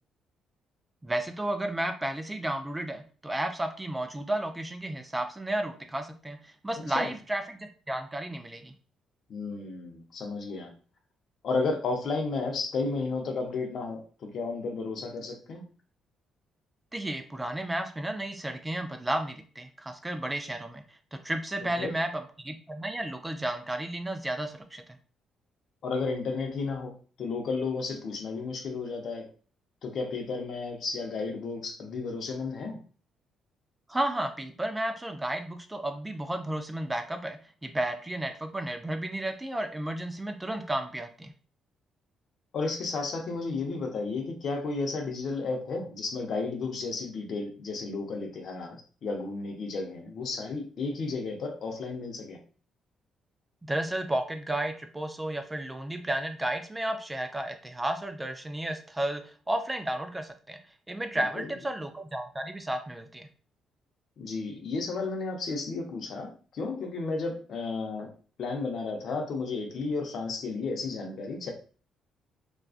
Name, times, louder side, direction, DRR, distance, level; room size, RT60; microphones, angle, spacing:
voice 1, 1.0-8.7 16.9-24.8 33.9-41.3 53.7-60.6 60.9-63.3, right 1 dB, 15° right, 6 dB, 0.3 m, -33 dB
voice 2, 9.3-10.7 11.4-15.6 21.6-21.9 25.8-29.3 29.8-32.8 42.5-52.4 61.1-61.5 64.2-68.1 68.4-71.5, left 3 dB, 60° left, 3 dB, 0.6 m, -33 dB
2.5 x 2.2 x 2.3 m, 0.40 s
cardioid pair, 85°, 0 cm